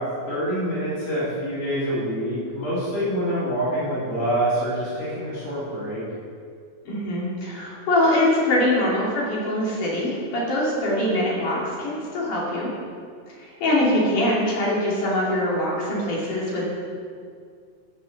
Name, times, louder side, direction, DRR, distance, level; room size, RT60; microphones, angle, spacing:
voice 1, 0.0-6.0, equal, 85° left, -10 dB, 5.6 m, -26 dB
voice 2, 6.8-12.7 13.4-16.6, left 1 dB, 65° left, -6 dB, 4.6 m, -23 dB
15.5 x 7.1 x 6.6 m, 2.2 s
omnidirectional pair, 3.9 m